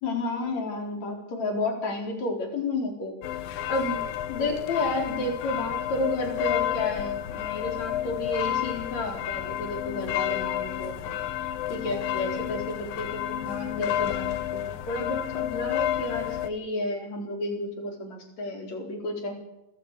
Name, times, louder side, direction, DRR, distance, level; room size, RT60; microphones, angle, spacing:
voice 1, 0.0-11.2 11.7-19.4, left 2 dB, 50° left, 4 dB, 5.3 m, -31 dB
sound 1, 3.2-16.5, left 12 dB, 85° left, 3.0 m, -30 dB
28.5 x 14.0 x 6.8 m, 0.90 s
omnidirectional pair, 4.0 m